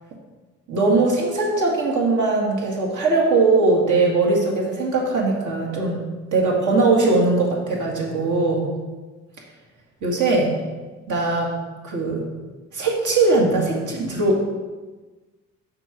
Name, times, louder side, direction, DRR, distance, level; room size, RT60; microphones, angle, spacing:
voice 1, 0.7-6.0 6.3-8.7 10.0-10.5 11.1-11.5 11.8-12.3 12.7-14.4, right 3 dB, 80° right, -2 dB, 2.0 m, -20 dB
6.8 x 5.7 x 6.0 m, 1.3 s
cardioid pair, 90°, 30 cm